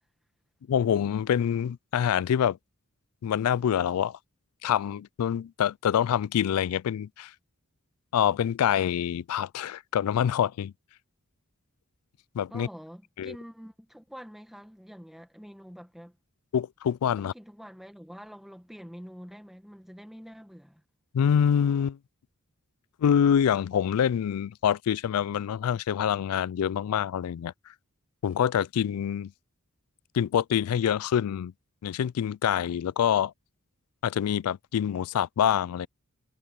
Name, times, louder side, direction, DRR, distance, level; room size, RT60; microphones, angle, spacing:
voice 1, 0.7-2.6 3.2-4.2 4.6-7.3 8.1-10.7 12.3-12.7 13.2-13.3 16.5-17.3 21.1-22.0 23.0-27.5 28.2-29.3 30.1-31.5 31.8-33.3 34.0-35.9, left 9 dB, 80° left, 0.3 m, -26 dB
voice 2, 12.5-16.2 17.2-20.8, equal, ahead, 1.7 m, -46 dB
head